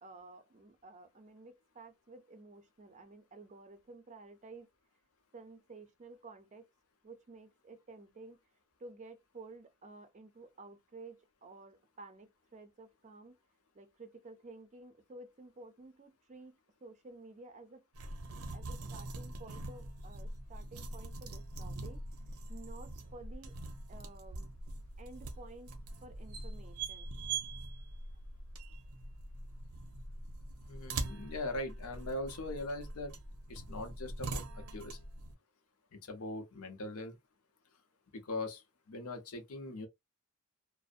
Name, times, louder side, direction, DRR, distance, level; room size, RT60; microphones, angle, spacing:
voice 1, 0.0-4.7 5.3-6.7 7.0-8.4 8.8-13.4 13.7-17.8 18.3-22.0 22.5-23.6 23.9-24.6 25.0-27.1, right 3 dB, 35° right, 0.5 m, -53 dB
sound 1, 17.9-35.3, right 3 dB, 85° right, 0.5 m, -43 dB
voice 2, 30.7-33.2 33.5-34.5 34.7-35.0 35.9-37.2 38.1-38.6 38.9-39.9, left 2 dB, 85° left, 0.7 m, -40 dB
2.5 x 2.0 x 2.4 m
head